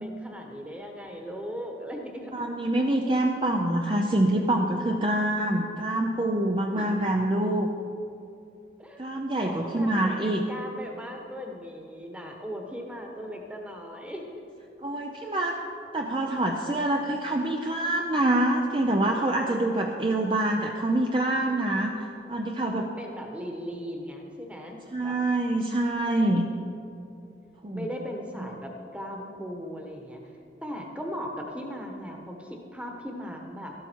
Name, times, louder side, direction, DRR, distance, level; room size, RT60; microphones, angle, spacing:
voice 1, 0.0-2.5 6.7-7.0 8.8-9.0 9.4-14.2 23.0-25.2 27.7-30.2 30.6-33.7, equal, 5° right, 1 dB, 1.2 m, -38 dB
voice 2, 2.3-7.7 9.0-10.4 14.8-15.6 15.9-22.9 24.9-26.5 27.6-27.9 28.4-28.5, right 1 dB, 30° right, 1 dB, 0.6 m, -26 dB
12.5 x 12.5 x 4.6 m, 2.7 s
head